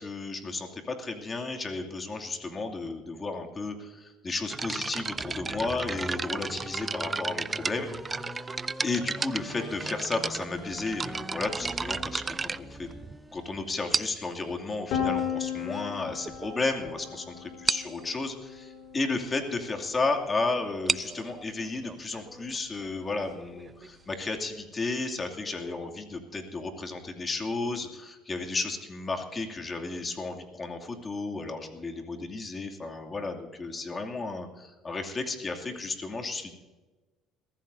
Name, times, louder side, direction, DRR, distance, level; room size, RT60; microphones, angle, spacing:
voice 1, 0.0-8.5 8.8-12.9 13.3-36.5, left 3 dB, 30° left, 3 dB, 2.6 m, -33 dB
sound 1, 4.5-13.3 13.9-14.4 15.2-15.3 15.9-16.0 16.3-16.5 16.8-16.9 17.2-17.3 17.7-18.0 20.6-24.1, right 4 dB, 30° right, 0.4 m, -34 dB
sound 2, 5.1-14.7, right 1 dB, 5° right, 1.7 m, -43 dB
Piano, 14.9-20.7, left 8 dB, 70° left, 4.0 m, -36 dB
22.0 x 15.0 x 2.7 m, 1.2 s
hypercardioid pair, 70°, 0 cm